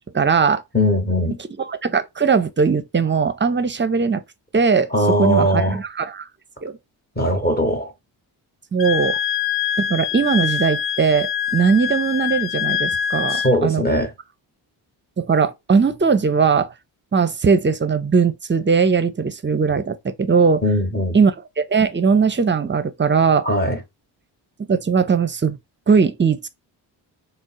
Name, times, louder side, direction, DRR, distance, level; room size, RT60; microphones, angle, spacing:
voice 1, 0.1-0.6 1.6-4.2 4.5-4.9 5.2-6.3 6.6-6.7 8.7-9.2 9.8-13.8 15.2-16.7 17.1-20.6 21.1-21.3 21.7-23.5 24.7-25.6 25.9-26.5, right 5 dB, 25° right, 0.6 m, -19 dB
voice 2, 0.7-1.4 4.9-5.8 7.2-7.9 13.3-14.1 20.6-21.2 23.4-23.8, equal, 20° left, 1.0 m, -20 dB
Wind instrument woodwind instrument, 8.8-13.5, left 9 dB, 60° left, 0.7 m, -24 dB
3.5 x 2.1 x 4.0 m
supercardioid pair, 45°, 50 cm